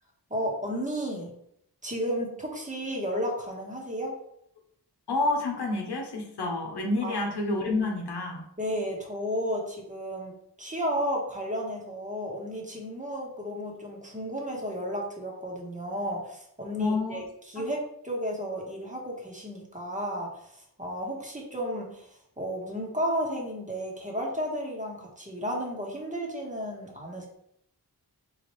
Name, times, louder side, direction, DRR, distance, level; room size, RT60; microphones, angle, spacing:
voice 1, 0.3-1.3 1.8-4.1 7.0-7.2 8.6-17.2 17.5-22.1 22.4-27.3, equal, 20° right, -1 dB, 1.3 m, -33 dB
voice 2, 5.1-8.4 16.8-17.2 17.6-17.7, left 2 dB, 75° left, 1 dB, 0.9 m, -29 dB
3.9 x 3.2 x 3.1 m, 0.73 s
cardioid pair, 45°, 40 cm